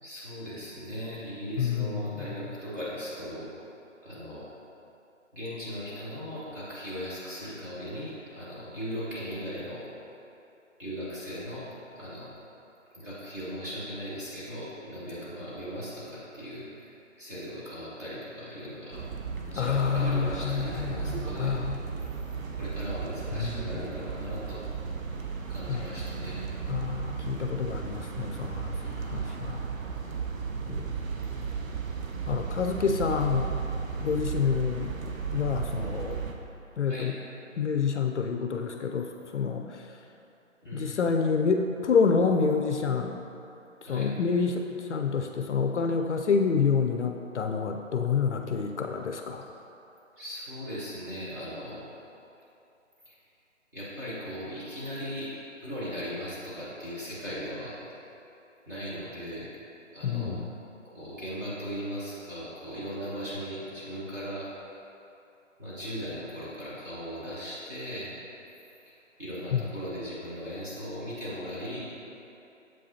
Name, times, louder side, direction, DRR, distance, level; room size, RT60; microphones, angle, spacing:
voice 1, 0.0-3.5 4.0-4.5 5.3-9.9 10.8-12.3 12.9-16.9 17.2-19.0 19.5-21.5 22.5-24.6 25.5-26.5 28.8-29.2 36.9-37.1 40.6-40.9 43.9-44.1 50.2-51.8 53.0-53.2 53.7-55.3 55.6-57.8 58.7-59.5 59.9-60.3 60.8-64.5 65.6-68.1 68.9-69.0 69.2-71.9, equal, 15° right, -11 dB, 1.1 m, -38 dB
voice 2, 1.6-2.4 19.6-21.8 23.3-23.8 25.7-25.9 26.7-28.8 29.0-29.6 30.7-31.1 32.3-33.6 34.0-36.2 36.8-37.1 37.6-40.0 40.7-43.2 43.9-49.5 60.0-60.5 69.5-69.6, left 5 dB, 65° left, 4 dB, 0.5 m, -28 dB
sound 1, 18.9-36.3, right 5 dB, 85° right, 0.8 m, -35 dB
7.4 x 5.4 x 2.8 m, 2.8 s
hypercardioid pair, 160°, 39 cm